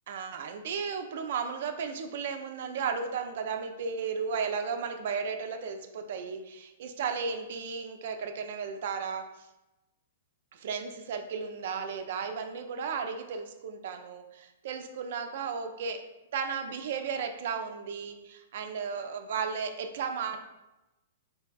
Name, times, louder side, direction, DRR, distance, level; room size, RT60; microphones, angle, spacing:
voice 1, 0.1-9.3 10.5-16.0 16.3-20.4, right 6 dB, 60° right, 7 dB, 0.4 m, -34 dB
4.0 x 3.3 x 2.2 m, 0.99 s
hypercardioid pair, 115°, 0 cm